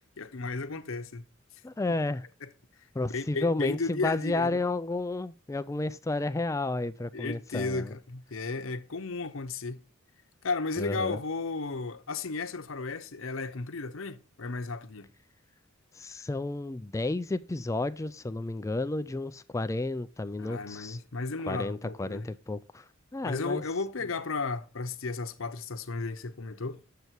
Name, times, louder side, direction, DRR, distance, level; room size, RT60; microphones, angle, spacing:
voice 1, 0.2-1.2 2.4-2.5 3.1-4.6 7.1-9.8 10.4-15.1 20.4-22.3 23.2-26.8, left 3 dB, 70° left, 0.8 m, -34 dB
voice 2, 1.6-2.2 2.9-7.9 10.8-11.2 16.0-21.0 21.5-22.8 23.1-23.6, left 2 dB, 15° left, 0.3 m, -32 dB
8.1 x 6.7 x 4.4 m
head